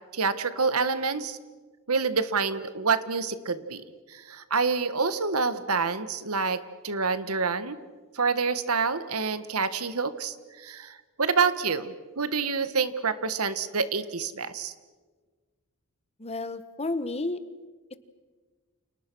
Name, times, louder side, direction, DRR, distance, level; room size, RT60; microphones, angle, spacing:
voice 1, 0.1-1.4 1.9-3.8 4.1-7.8 8.1-14.7, right 4 dB, 90° right, 12 dB, 1.6 m, -27 dB
voice 2, 16.2-17.4, left 2 dB, 30° left, 12 dB, 1.4 m, -31 dB
30.0 x 28.5 x 6.3 m, 1.4 s
head